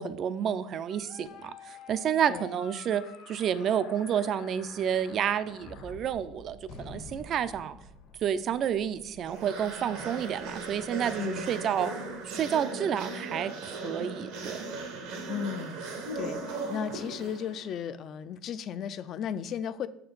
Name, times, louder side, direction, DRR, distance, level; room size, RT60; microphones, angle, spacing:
voice 1, 0.0-7.8 8.2-11.9 12.2-14.6, right 8 dB, 40° right, 14 dB, 0.3 m, -30 dB
sound 1, 0.9-5.9, left 8 dB, 60° left, 0.8 m, -50 dB
Gunshot gunfire, 5.6-12.2, left 2 dB, 75° left, 1.6 m, -50 dB
sound 2, 9.3-17.7, right 3 dB, 80° right, 1.0 m, -38 dB
voice 2, 15.3-15.8 16.1-19.9, left 8 dB, 40° left, 15 dB, 0.3 m, -35 dB
6.4 x 4.3 x 3.9 m, 0.79 s
cardioid pair, 145°, 0 cm